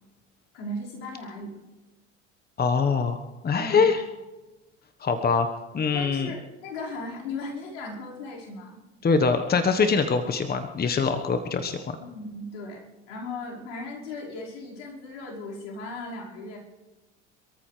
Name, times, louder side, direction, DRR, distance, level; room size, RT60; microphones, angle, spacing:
voice 1, 0.5-1.5 3.6-3.9 5.9-8.8 12.0-16.6, left 2 dB, 75° left, -4 dB, 5.2 m, -37 dB
voice 2, 2.6-4.0 5.0-5.5 5.7-6.3 9.0-12.0, left 5 dB, 25° left, 7 dB, 1.3 m, -23 dB
27.5 x 14.0 x 3.4 m, 1.1 s
hypercardioid pair, 75°, 37 cm